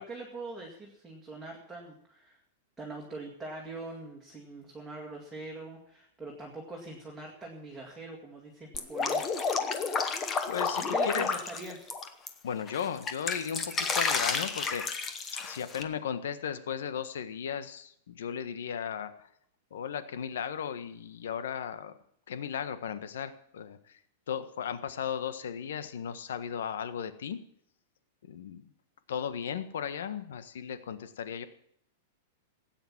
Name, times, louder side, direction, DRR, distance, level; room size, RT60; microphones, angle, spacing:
voice 1, 0.0-2.4 2.8-9.8 10.2-10.3 10.8-11.9, right 2 dB, 5° right, -3 dB, 2.1 m, -43 dB
Drip, 8.7-12.3 12.7-15.8, left 4 dB, 15° left, 1.0 m, -31 dB
voice 2, 10.5-11.3 12.4-15.0 15.4-19.3 19.7-22.0 22.3-24.0 24.3-27.4 28.2-28.6 29.1-31.5, left 8 dB, 85° left, 11 dB, 1.5 m, -36 dB
18.0 x 9.1 x 7.4 m, 0.68 s
supercardioid pair, 180°, 0 cm